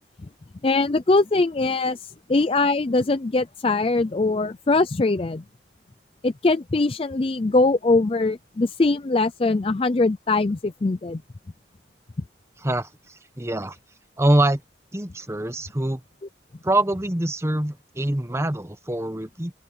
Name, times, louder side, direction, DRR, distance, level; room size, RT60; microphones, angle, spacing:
voice 1, 0.6-5.4 6.2-11.2, left 3 dB, 30° left, 0.4 m, -22 dB
voice 2, 12.6-13.8 14.2-14.6 14.9-16.0 16.6-19.5, right 1 dB, 15° right, 0.9 m, -24 dB
open air
head